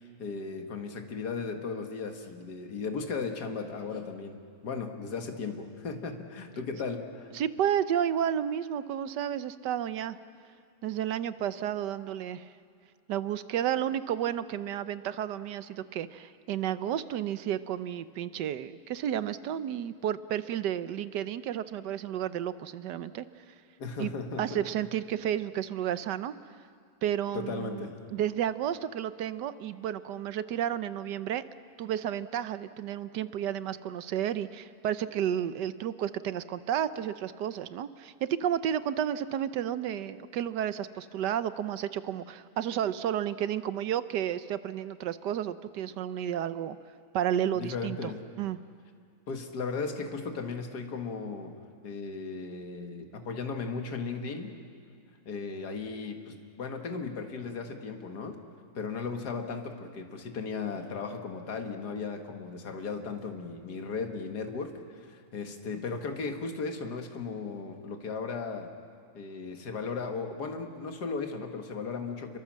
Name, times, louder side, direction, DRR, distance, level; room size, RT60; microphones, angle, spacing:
voice 1, 0.2-7.3 23.8-24.6 27.3-28.0 47.5-48.2 49.3-51.5 51.8-54.6 55.3-58.4 58.8-68.7 69.1-72.4, left 4 dB, 70° left, 4 dB, 2.2 m, -36 dB
voice 2, 7.3-10.2 10.8-12.5 13.1-23.3 24.0-24.1 24.4-26.3 27.0-31.4 31.8-46.8 47.1-48.1 48.4-48.6, right 10 dB, 85° right, 13 dB, 1.4 m, -32 dB
28.0 x 22.5 x 7.5 m, 2.3 s
omnidirectional pair, 1.8 m